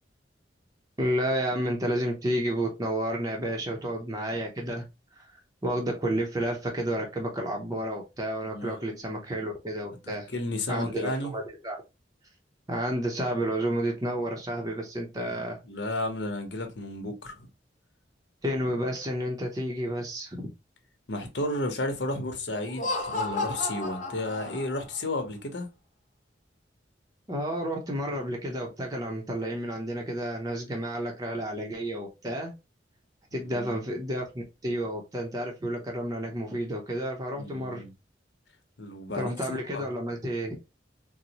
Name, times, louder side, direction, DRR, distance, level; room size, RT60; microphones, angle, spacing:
voice 1, 1.0-4.9 5.2-10.3 10.7-11.8 12.7-15.6 18.4-20.5 27.3-32.5 33.3-37.8 39.1-40.6, right 1 dB, 20° right, 0.7 m, -31 dB
voice 2, 8.5-9.2 10.1-11.3 15.2-17.5 21.1-25.7 33.4-33.7 37.4-37.9 38.8-39.8, left 2 dB, 70° left, 0.9 m, -33 dB
Laughter, 22.6-25.0, left 2 dB, 45° left, 0.7 m, -33 dB
4.0 x 2.0 x 2.9 m
head